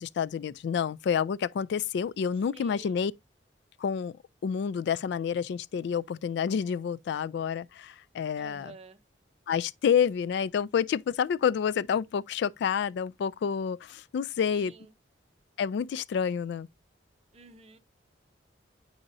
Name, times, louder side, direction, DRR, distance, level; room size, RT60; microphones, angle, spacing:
voice 1, 0.0-3.1 3.8-4.2 4.4-8.7 9.5-14.7 15.6-16.7, left 7 dB, 65° left, 0.3 m, -29 dB
voice 2, 2.5-3.0 8.4-9.0 14.5-15.0 17.3-17.8, right 3 dB, 35° right, 0.7 m, -50 dB
8.6 x 4.9 x 2.6 m
head